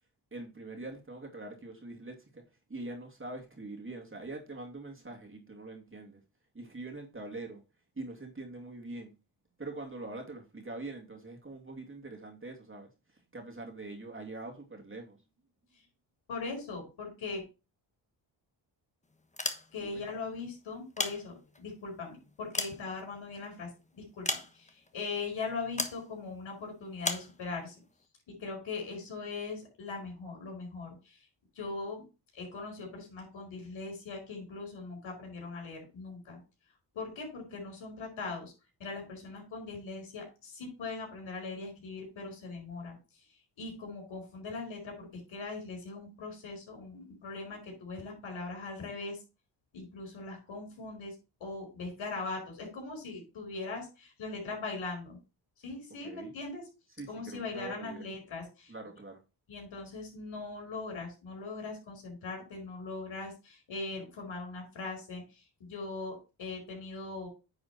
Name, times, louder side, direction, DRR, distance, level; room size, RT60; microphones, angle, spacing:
voice 1, 0.3-2.4 2.7-6.2 6.5-7.6 7.9-9.1 9.6-15.2 19.8-20.1 56.0-56.3 57.0-58.1 58.7-59.2, right 2 dB, 25° right, 2.6 m, -43 dB
voice 2, 16.3-17.4 19.7-24.3 24.5-27.7 28.4-31.3 31.5-32.0 32.3-36.4 36.9-38.5 38.8-49.2 49.7-55.2 55.6-56.6 57.1-58.7 59.5-67.3, left 3 dB, 75° left, 4.9 m, -40 dB
sound 1, 19.2-20.0 20.7-21.7 22.2-23.5 24.2-24.9 25.8-26.0 27.0-27.3, left 2 dB, 15° left, 1.2 m, -35 dB
9.6 x 4.3 x 4.3 m
cardioid pair, 65°, 48 cm